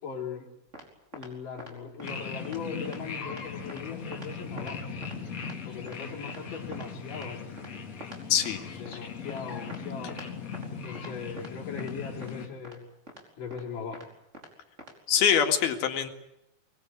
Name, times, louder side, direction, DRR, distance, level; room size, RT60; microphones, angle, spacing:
voice 1, 0.0-0.5 1.1-4.8 5.7-7.4 8.8-10.2 10.7-12.8 13.4-14.1, left 6 dB, 60° left, 2 dB, 5.6 m, -39 dB
sound 1, 0.7-0.8 1.1-1.3 1.6-1.7 2.0-2.1 2.4-2.6 2.9-3.0 3.3-3.4 3.7-3.8 4.1-4.3 4.6-4.7 5.0-5.2 5.4-5.6 5.9-6.0 6.3-6.4 6.7-6.9 7.1-7.3 7.6-7.7 8.0-8.2 8.4-8.5 8.9-9.0 9.3-9.4 9.7-9.8 10.1-10.3 10.5-10.7 11.0-11.1 11.4-11.5 11.8-11.9 12.2-12.3 12.6-12.8 13.1-13.2 13.5-13.6 13.9-14.1 14.3-14.5 14.8-14.9 15.2-15.4, right 1 dB, 20° right, 4.8 m, -44 dB
sound 2, 2.0-12.5, left 5 dB, 45° left, 3.9 m, -39 dB
voice 2, 8.3-8.6 15.1-16.1, left 8 dB, 90° left, 7 dB, 4.0 m, -24 dB
24.5 x 22.0 x 9.4 m, 0.85 s
omnidirectional pair, 4.2 m